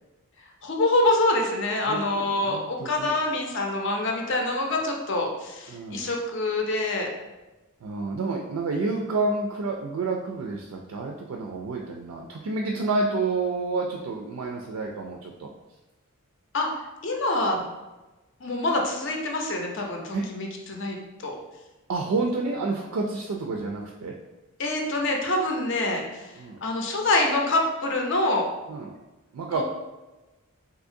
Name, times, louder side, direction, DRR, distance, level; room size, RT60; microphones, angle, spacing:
voice 1, 0.6-7.1 16.5-16.7 17.0-17.6 18.4-21.0 21.2-21.4 24.6-28.4, left 2 dB, 55° left, 1 dB, 0.6 m, -26 dB
voice 2, 1.9-3.1 5.7-6.1 7.8-15.5 20.1-20.3 21.9-24.1 26.4-26.6 28.7-28.9 29.3-29.6, right 3 dB, 80° right, 1 dB, 0.4 m, -29 dB
3.6 x 2.8 x 2.6 m, 1.1 s
head